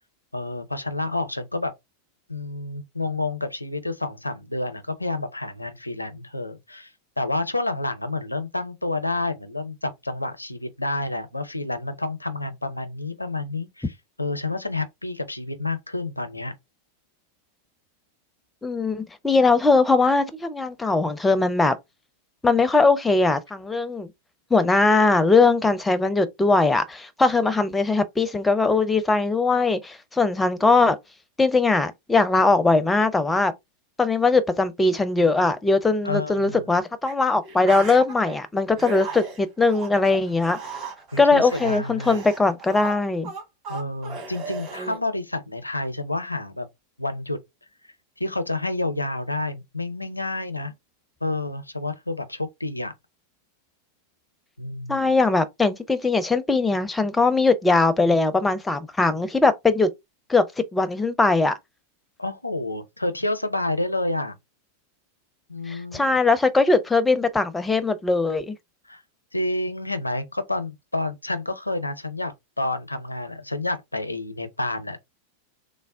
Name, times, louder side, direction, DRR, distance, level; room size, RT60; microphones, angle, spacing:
voice 1, 0.3-1.7 2.3-6.9 7.2-13.9 14.2-16.5 36.0-36.7 41.1-42.2 43.7-46.7 47.0-47.4 48.2-50.7 51.2-52.9 54.6-55.1 62.2-64.3 65.5-66.2 68.9-69.0 69.3-75.0, left 2 dB, 85° left, 0.5 m, -29 dB
voice 2, 18.6-21.8 22.4-24.1 24.5-31.0 31.4-33.5 34.0-40.6 41.2-43.3 54.9-59.9 60.3-61.6 65.7-68.6, left 3 dB, 10° left, 0.5 m, -20 dB
sound 1, 37.1-37.2 37.4-38.4 38.8-45.0, right 5 dB, 40° right, 1.7 m, -36 dB
3.3 x 2.0 x 3.6 m
figure-of-eight pair, 90°, 0 cm